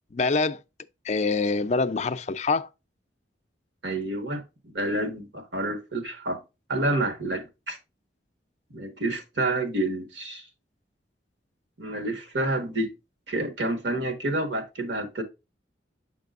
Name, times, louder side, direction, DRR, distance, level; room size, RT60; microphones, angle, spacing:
voice 1, 0.1-0.6 1.0-2.7, left 4 dB, 40° left, 0.4 m, -25 dB
voice 2, 3.8-6.4 6.7-7.8 8.7-10.5 11.8-12.9 13.3-15.2, right 2 dB, 75° right, 1.6 m, -29 dB
6.7 x 5.9 x 2.5 m
head